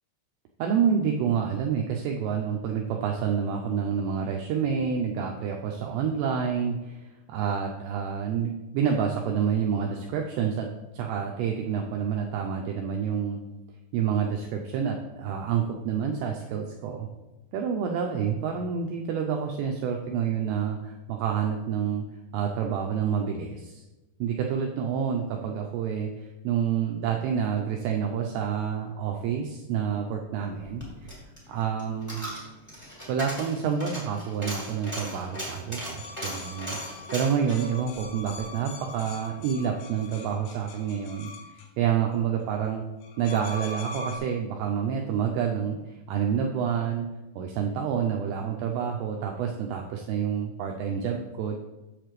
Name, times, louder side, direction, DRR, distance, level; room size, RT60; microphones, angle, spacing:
voice 1, 0.6-10.7 10.9-13.4 13.9-17.1 17.5-22.0 22.3-23.8 24.2-31.2 31.5-32.2 33.1-36.8 37.1-41.3 41.8-42.8 43.2-47.1 47.4-51.6, right 7 dB, 90° right, 1 dB, 2.4 m, -28 dB
Coin (dropping), 30.6-39.0 39.3-39.4, equal, 15° left, 0.6 m, -38 dB
sound 1, 35.9-41.7 43.0-44.2, left 2 dB, 85° left, 3.6 m, -42 dB
8.0 x 6.7 x 3.1 m, 1.0 s
omnidirectional pair, 5.6 m